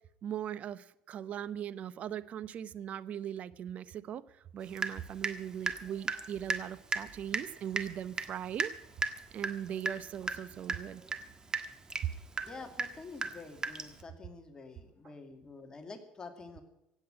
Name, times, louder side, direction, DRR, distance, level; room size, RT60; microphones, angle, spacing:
voice 1, 0.2-4.2 4.5-8.7 9.3-11.0 15.0-15.1, right 9 dB, 50° right, 17 dB, 0.8 m, -39 dB
Water tap faucet / Drip, 4.8-5.4 5.6-14.0, right 4 dB, 25° right, 1.5 m, -36 dB
voice 2, 12.5-16.6, left 3 dB, 25° left, 5 dB, 2.3 m, -48 dB
16.5 x 8.6 x 8.8 m, 0.85 s
supercardioid pair, 100°, 3 cm